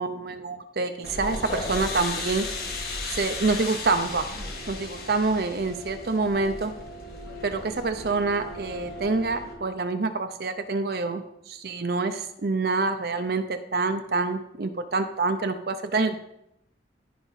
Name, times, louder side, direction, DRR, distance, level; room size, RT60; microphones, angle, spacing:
voice 1, 0.0-2.4 3.1-4.3 4.7-6.7 7.4-16.2, right 3 dB, 60° right, 7 dB, 0.6 m, -27 dB
sound 1, 1.0-9.5, left 2 dB, 55° left, 1.8 m, -35 dB
15.0 x 5.0 x 4.1 m, 0.81 s
head